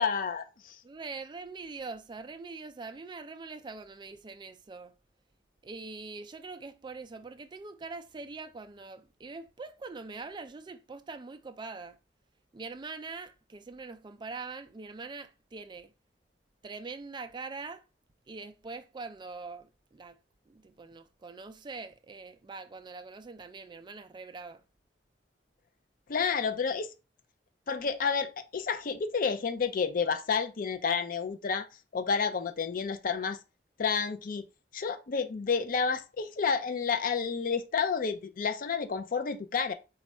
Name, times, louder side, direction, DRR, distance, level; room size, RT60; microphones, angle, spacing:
voice 1, 0.0-0.8 26.1-26.9 27.7-31.7 31.9-33.4 33.8-34.5 34.7-39.7, left 5 dB, 50° left, 0.5 m, -30 dB
voice 2, 0.8-4.9 5.6-12.0 12.5-15.9 16.6-17.8 18.3-20.2 20.5-24.6, right 4 dB, 25° right, 0.3 m, -43 dB
4.2 x 2.3 x 4.2 m
head